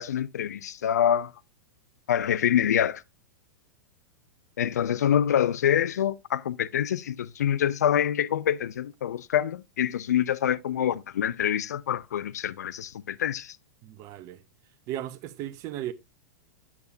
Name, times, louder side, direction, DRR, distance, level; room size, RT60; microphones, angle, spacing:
voice 1, 0.0-1.3 2.1-3.0 4.6-13.6, left 10 dB, 60° left, 0.5 m, -26 dB
voice 2, 13.8-14.4 14.9-15.9, right 12 dB, 35° right, 0.9 m, -36 dB
8.6 x 8.3 x 2.6 m
figure-of-eight pair, 100°, 10 cm